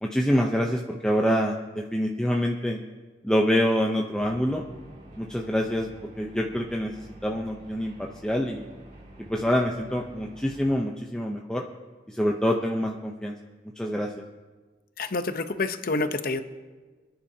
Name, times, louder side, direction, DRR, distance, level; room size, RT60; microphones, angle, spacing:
voice 1, 0.0-2.8 3.2-4.6 5.2-5.9 6.2-6.9 7.2-8.7 9.3-11.6 12.1-13.3 13.8-14.1, equal, 5° left, -1 dB, 0.7 m, -26 dB
sound 1, 4.1-10.7, right 1 dB, 45° right, 2.9 m, -48 dB
voice 2, 15.0-16.4, left 3 dB, 55° left, 9 dB, 0.9 m, -28 dB
26.5 x 10.5 x 2.8 m, 1.3 s
head